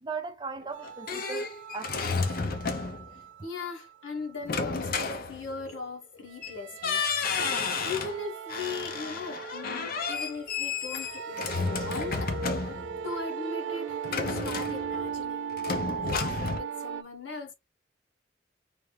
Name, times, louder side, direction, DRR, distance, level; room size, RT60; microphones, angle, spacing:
voice 1, 0.0-2.2, right 4 dB, 25° right, 0.5 m, -38 dB
sound 1, 0.6-3.1 4.4-5.8 6.4-6.6 6.8-8.2 8.5-13.0 14.0-15.2 15.6-16.6, left 4 dB, 55° left, 0.7 m, -32 dB
sound 2, 0.7-4.4 6.3-17.0, right 7 dB, 85° right, 0.3 m, -38 dB
voice 2, 3.1-7.0 7.8-12.3 12.6-12.7 13.0-17.5, left 4 dB, 85° left, 1.3 m, -39 dB
3.4 x 2.6 x 3.3 m
head